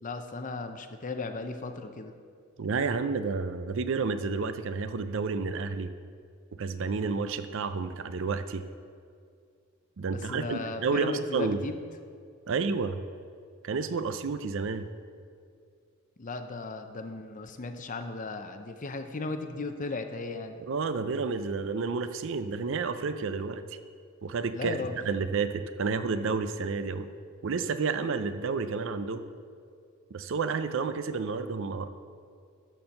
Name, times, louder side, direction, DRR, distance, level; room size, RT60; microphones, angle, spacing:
voice 1, 0.0-2.1 10.1-11.8 16.2-20.6 24.5-25.0, left 3 dB, 35° left, 7 dB, 0.6 m, -36 dB
voice 2, 2.6-5.9 6.6-8.6 10.0-11.6 12.5-13.0 13.6-14.9 20.7-23.6 24.2-27.1 27.4-29.2 30.1-31.9, right 4 dB, 60° right, 10 dB, 0.5 m, -30 dB
12.5 x 4.4 x 6.5 m, 2.3 s
head